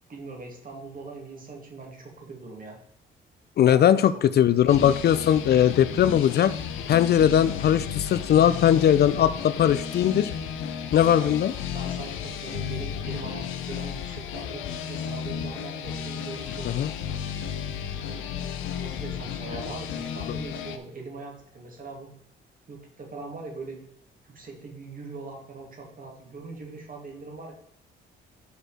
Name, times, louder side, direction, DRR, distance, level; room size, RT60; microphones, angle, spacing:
voice 1, 0.1-2.8 3.7-4.0 4.3-4.7 11.0-11.4 11.7-17.2 18.0-18.3 18.7-22.1 22.7-23.8 24.2-27.5, right 3 dB, 45° right, 0 dB, 2.4 m, -41 dB
voice 2, 3.6-6.5 6.9-10.3 10.9-11.5 16.6-16.9, left 10 dB, 55° left, 15 dB, 0.5 m, -20 dB
sound 1, 4.7-20.8, left 8 dB, 85° left, 0.8 m, -33 dB
6.5 x 5.0 x 4.9 m, 0.75 s
cardioid pair, 90°, 20 cm